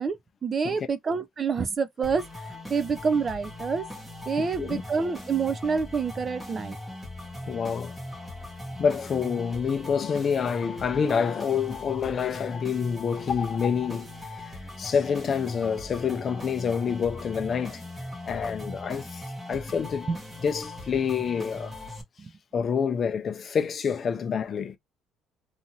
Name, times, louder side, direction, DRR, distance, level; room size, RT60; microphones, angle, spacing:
voice 1, 0.0-3.9 4.3-6.8 19.5-19.6 20.1-20.2 22.2-22.3, right 5 dB, 25° right, 0.4 m, -28 dB
sound 1, 2.0-22.0, left 1 dB, 10° right, 0.9 m, -40 dB
voice 2, 4.4-4.8 7.5-8.0 8.8-17.8 18.2-19.2 19.5-20.1 20.4-21.7 22.5-24.8, left 6 dB, 35° left, 0.5 m, -27 dB
2.8 x 2.5 x 2.6 m
cardioid pair, 150°, 0 cm